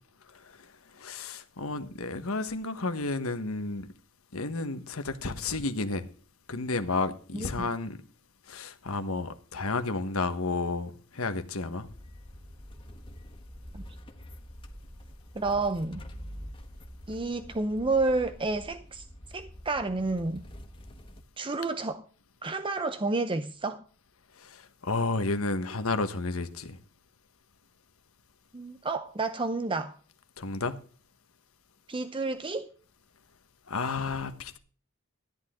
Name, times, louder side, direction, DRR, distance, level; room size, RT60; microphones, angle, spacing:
voice 1, 1.0-3.9 4.3-6.0 6.5-8.0 8.5-11.9 24.4-24.6 24.8-26.8 30.4-30.7 33.7-34.6, left 3 dB, 85° left, 1.3 m, -31 dB
voice 2, 7.3-7.7 15.3-16.0 17.1-19.0 19.3-20.4 21.4-22.0 22.4-23.8 28.5-30.0 31.9-32.7, right 3 dB, 25° right, 0.7 m, -30 dB
sound 1, 11.8-21.2, equal, 25° left, 1.3 m, -46 dB
13.5 x 10.0 x 3.7 m
head